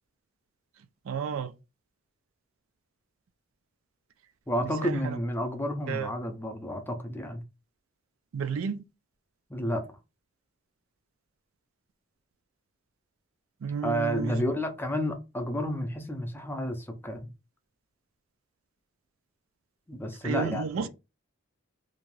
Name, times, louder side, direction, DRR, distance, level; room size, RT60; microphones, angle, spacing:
voice 1, 1.0-1.5 4.6-5.2 5.9-6.1 8.3-8.8 13.6-14.4 20.2-20.9, right 6 dB, 75° right, 0.4 m, -32 dB
voice 2, 4.5-7.4 9.5-9.8 13.8-17.3 19.9-20.9, equal, 10° left, 0.5 m, -31 dB
2.5 x 2.3 x 3.1 m
head